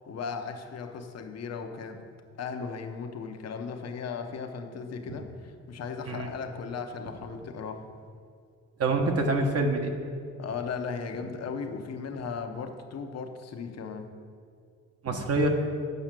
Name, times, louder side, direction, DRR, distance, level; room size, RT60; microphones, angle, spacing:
voice 1, 0.1-2.1 2.4-7.9 10.4-14.1, left 5 dB, 55° left, 6 dB, 1.0 m, -36 dB
voice 2, 8.8-9.9 15.0-15.5, right 2 dB, 50° right, 3 dB, 1.3 m, -25 dB
7.9 x 5.6 x 7.5 m, 2.2 s
cardioid pair, 90°, 30 cm